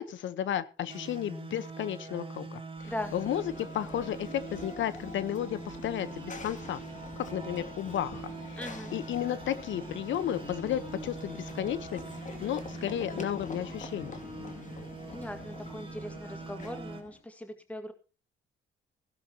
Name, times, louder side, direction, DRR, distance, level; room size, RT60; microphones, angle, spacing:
voice 1, 0.0-6.8 7.3-8.6 8.9-12.0 12.4-14.1, left 10 dB, 70° left, 15 dB, 1.0 m, -33 dB
sound 1, 0.9-17.0, right 4 dB, 25° right, 2.3 m, -43 dB
Run / Train, 2.8-17.2, left 4 dB, 40° left, 2.6 m, -45 dB
voice 2, 8.5-8.9 15.1-17.9, left 1 dB, 5° left, 6 dB, 2.0 m, -40 dB
16.5 x 12.0 x 2.9 m, 0.34 s
cardioid pair, 90°, 20 cm